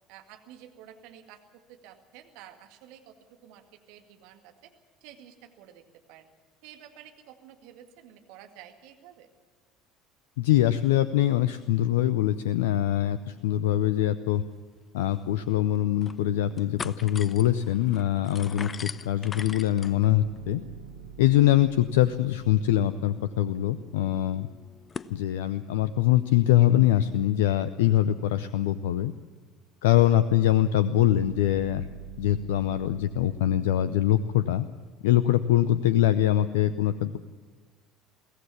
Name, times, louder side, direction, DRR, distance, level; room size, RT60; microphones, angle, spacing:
voice 1, 0.1-1.4 1.7-4.7 5.0-6.3 6.6-9.3, right 10 dB, 60° right, 6 dB, 2.1 m, -51 dB
voice 2, 10.4-14.4 14.9-20.6 21.2-24.5 25.1-29.1 29.8-31.9 32.2-34.7 35.0-37.2, left 13 dB, 70° left, 15 dB, 0.6 m, -23 dB
sound 1, 14.8-14.9 15.1-15.2 15.7-16.2 16.5-25.1, left 5 dB, 30° left, 0.7 m, -44 dB
sound 2, 20.1-24.4 31.0-34.7, right 6 dB, 80° right, 0.9 m, -48 dB
22.5 x 17.0 x 7.1 m, 1.5 s
figure-of-eight pair, 65°, 0 cm